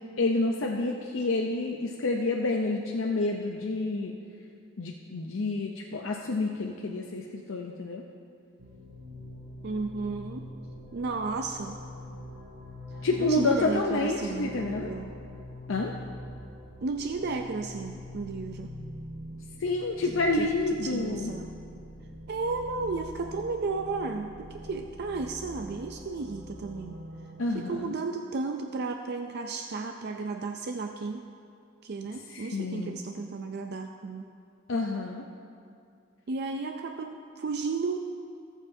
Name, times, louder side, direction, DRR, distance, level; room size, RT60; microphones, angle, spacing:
voice 1, 0.2-4.1 4.8-8.0 13.0-14.9 15.7-15.9 19.6-21.3 27.4-27.9 32.3-33.0 34.7-35.3, left 2 dB, 75° left, 0 dB, 0.6 m, -29 dB
sound 1, 8.6-27.5, left 1 dB, 80° right, 2.3 m, -44 dB
voice 2, 9.6-10.5 10.9-11.8 13.2-15.1 16.8-18.7 20.3-20.5 20.8-21.5 22.3-27.0 27.5-31.3 31.8-34.2 36.3-38.0, right 3 dB, 55° right, 5 dB, 0.4 m, -33 dB
19.5 x 7.3 x 2.7 m, 2.3 s
head